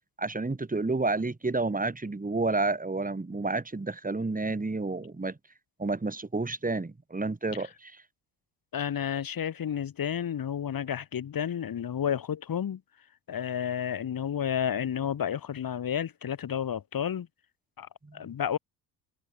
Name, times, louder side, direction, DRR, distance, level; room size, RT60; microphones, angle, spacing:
voice 1, 0.2-5.4 5.8-8.0 18.0-18.2, right 3 dB, 15° right, 5.1 m, -30 dB
voice 2, 8.7-12.8 13.3-17.3 17.8-18.6, left 9 dB, 45° left, 3.0 m, -31 dB
hypercardioid pair, 55°, 49 cm